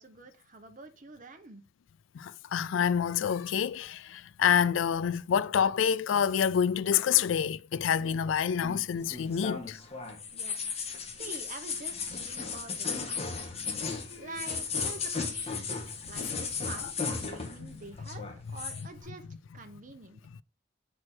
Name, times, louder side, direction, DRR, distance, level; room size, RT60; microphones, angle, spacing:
voice 1, 0.0-1.6 10.3-10.7 11.1-13.5 14.1-15.7 16.0-19.3 19.5-20.2, right 3 dB, 45° right, 1.1 m, -47 dB
voice 2, 2.1-9.8 14.1-14.3 17.6-17.7, left 8 dB, 90° left, 0.4 m, -27 dB
sound 1, 8.6-17.7 18.0-18.8, left 5 dB, 35° left, 1.6 m, -35 dB
7.4 x 4.7 x 4.4 m
head